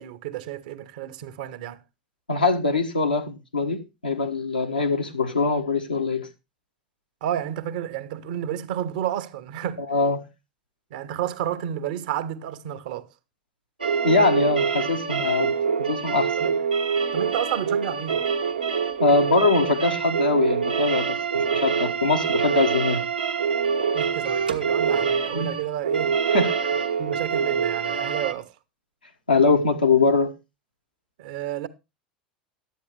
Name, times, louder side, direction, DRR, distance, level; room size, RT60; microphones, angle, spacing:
voice 1, 0.0-1.8 7.2-9.9 10.9-13.1 16.4-16.6 17.1-18.3 23.9-26.2 27.0-28.5 31.2-31.7, right 11 dB, 60° right, 0.8 m, -31 dB
voice 2, 2.3-6.3 9.9-10.2 14.0-15.5 15.8-16.3 19.0-23.0 25.3-25.5 26.3-26.7 29.3-30.3, left 3 dB, 85° left, 1.4 m, -22 dB
sound 1, 13.8-28.3, right 6 dB, 85° right, 1.1 m, -25 dB
11.5 x 8.5 x 3.3 m
figure-of-eight pair, 80°, 5 cm